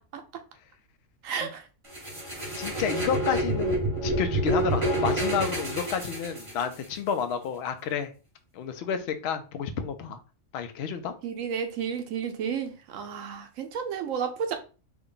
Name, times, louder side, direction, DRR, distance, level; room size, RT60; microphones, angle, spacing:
voice 1, 1.2-1.7 11.2-14.5, right 7 dB, 90° right, 1.0 m, -32 dB
sound 1, 1.9-6.8, right 1 dB, 25° right, 1.2 m, -28 dB
voice 2, 2.5-8.1 8.5-10.2 10.5-11.1, left 7 dB, 65° left, 0.7 m, -30 dB
3.6 x 2.3 x 3.7 m
omnidirectional pair, 1.3 m